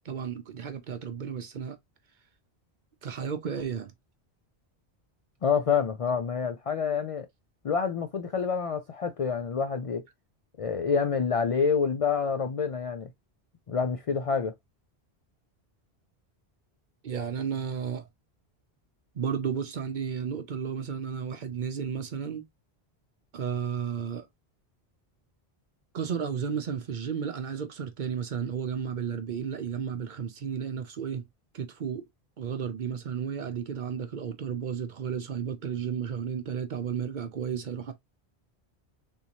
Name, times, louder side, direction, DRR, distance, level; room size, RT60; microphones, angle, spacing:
voice 1, 0.0-1.8 3.0-3.9 17.0-18.0 19.1-22.4 23.3-24.3 25.9-31.2 31.5-32.1 32.4-37.9, right 7 dB, 55° right, 0.7 m, -33 dB
voice 2, 5.4-7.3 7.6-10.0 10.6-13.1 13.7-14.5, left 6 dB, 60° left, 0.3 m, -27 dB
3.6 x 2.7 x 2.8 m
omnidirectional pair, 1.1 m